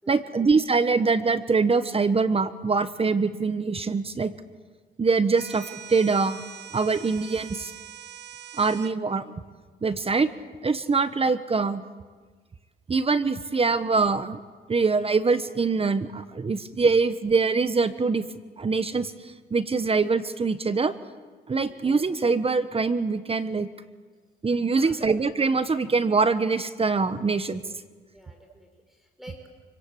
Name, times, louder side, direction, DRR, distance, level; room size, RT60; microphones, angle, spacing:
voice 1, 0.1-4.3 5.0-6.4 6.7-7.7 8.6-9.3 9.8-10.3 10.6-11.8 12.9-14.4 14.7-18.2 18.6-20.9 21.5-23.7 24.4-27.6, right 4 dB, 30° right, 12 dB, 1.2 m, -24 dB
sound 1, 5.4-9.0, right 10 dB, 60° right, 1.2 m, -43 dB
voice 2, 21.5-21.8 24.7-25.0 28.1-29.5, equal, ahead, 1 dB, 5.3 m, -49 dB
28.5 x 23.5 x 8.5 m, 1.4 s
cardioid pair, 90°, 20 cm